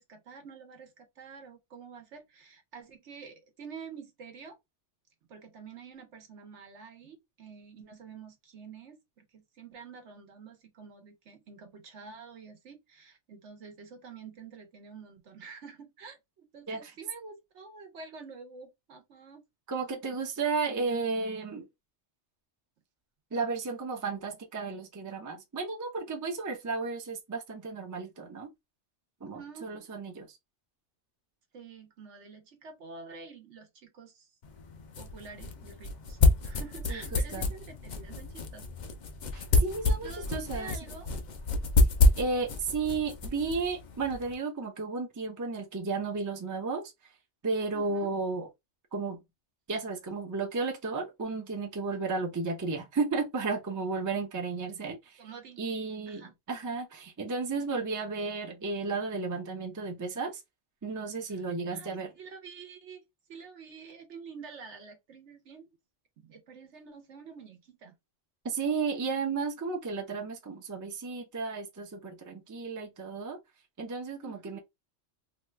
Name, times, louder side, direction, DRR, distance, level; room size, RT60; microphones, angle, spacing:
voice 1, 0.0-4.6 5.3-19.4 29.2-29.7 31.5-34.3 35.0-38.7 39.8-41.1 47.7-48.1 55.2-55.6 56.1-56.3 61.3-61.4 61.7-63.0 63.3-65.7 66.2-68.0 74.2-74.6, right 5 dB, 75° right, 1.1 m, -48 dB
voice 2, 19.7-21.6 23.3-28.5 29.2-30.4 36.9-37.0 37.3-37.5 39.3-40.7 42.2-46.8 47.4-48.5 48.9-49.2 49.7-55.2 55.6-60.4 60.8-62.1 68.4-73.4 73.8-74.6, right 4 dB, 20° right, 0.5 m, -33 dB
sound 1, 34.4-44.3, left 3 dB, 50° left, 0.6 m, -28 dB
2.9 x 2.3 x 3.2 m
omnidirectional pair, 1.2 m